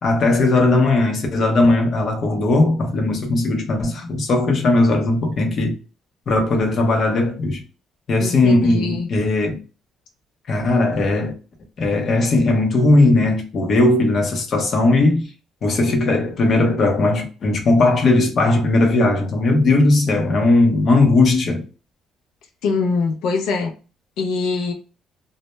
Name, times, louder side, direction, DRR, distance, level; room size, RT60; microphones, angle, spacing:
voice 1, 0.0-5.8 6.3-7.6 8.1-9.6 10.5-11.3 11.8-15.3 15.6-21.6, left 2 dB, 40° left, 0.6 m, -18 dB
voice 2, 8.2-9.1 22.6-23.7 24.2-24.7, left 4 dB, 85° left, 0.4 m, -23 dB
2.1 x 2.1 x 2.9 m
cardioid pair, 155°, 0 cm